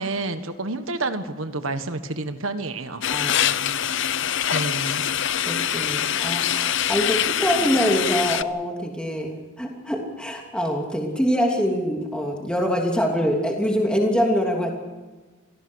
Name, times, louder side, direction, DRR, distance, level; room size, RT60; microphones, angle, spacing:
voice 1, 0.0-3.0 3.3-3.5 4.5-5.1, right 2 dB, 70° right, 9 dB, 1.5 m, -29 dB
sound 1, 3.0-8.4, left 10 dB, 60° left, 0.7 m, -24 dB
voice 2, 3.1-3.9 5.5-14.7, equal, 5° left, 0 dB, 3.0 m, -24 dB
27.5 x 17.5 x 6.4 m, 1.3 s
head